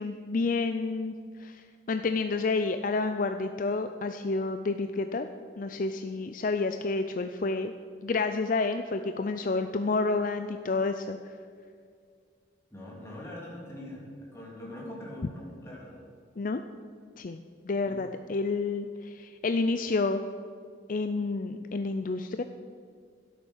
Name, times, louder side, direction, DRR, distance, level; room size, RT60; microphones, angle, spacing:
voice 1, 0.0-5.3 5.6-7.7 8.0-11.3 16.4-16.6 17.2-20.2 20.9-22.4, left 3 dB, 50° left, 8 dB, 0.5 m, -30 dB
voice 2, 12.7-14.0 14.3-16.0 17.8-18.1, left 1 dB, 15° left, -4 dB, 3.3 m, -42 dB
12.5 x 10.0 x 6.4 m, 2.2 s
head